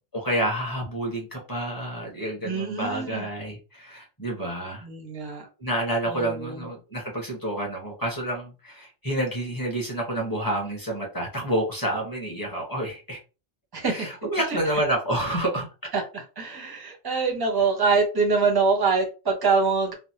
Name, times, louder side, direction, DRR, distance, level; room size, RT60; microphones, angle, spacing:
voice 1, 0.1-4.8 5.6-13.2 13.9-15.6, right 1 dB, 20° left, 1.1 m, -29 dB
voice 2, 2.4-3.3 4.8-5.5 6.1-6.7 13.7-14.1 14.5-14.6 15.9-19.9, right 4 dB, 25° right, 0.6 m, -25 dB
3.2 x 2.0 x 2.8 m
omnidirectional pair, 1.1 m